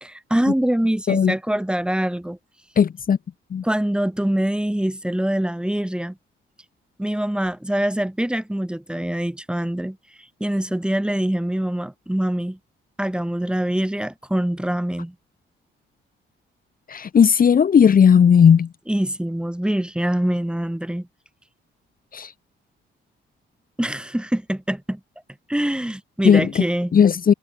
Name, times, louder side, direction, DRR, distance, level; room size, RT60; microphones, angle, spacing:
voice 1, 0.0-2.4 3.6-6.2 7.0-10.0 10.4-12.6 13.0-15.1 18.9-21.1 23.8-25.0 25.5-26.9, right 1 dB, 5° right, 2.7 m, -24 dB
voice 2, 2.8-3.2 3.5-3.6 16.9-18.7 22.1-22.3 26.2-26.6 26.9-27.3, left 7 dB, 45° left, 1.5 m, -15 dB
cardioid pair, 120°, 21 cm